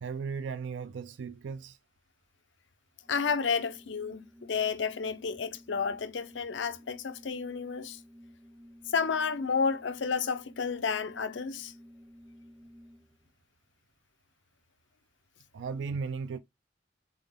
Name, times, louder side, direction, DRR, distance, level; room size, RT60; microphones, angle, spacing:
voice 1, 0.0-1.8 15.5-16.4, right 5 dB, 90° right, 0.4 m, -36 dB
Organ, 3.0-13.3, equal, 10° right, 0.4 m, -54 dB
voice 2, 3.1-8.0 8.9-11.7, left 5 dB, 90° left, 0.6 m, -31 dB
3.8 x 3.7 x 3.5 m
head